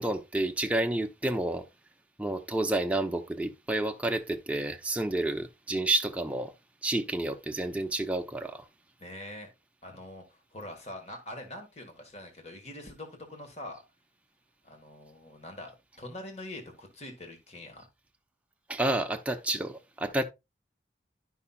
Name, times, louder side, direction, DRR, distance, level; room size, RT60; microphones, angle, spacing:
voice 1, 0.0-1.7 2.2-6.5 6.8-8.6 18.7-20.2, right 2 dB, 10° right, 0.6 m, -30 dB
voice 2, 9.0-9.5 9.8-13.8 14.6-17.8, left 1 dB, 40° left, 1.3 m, -44 dB
11.0 x 5.6 x 2.3 m
head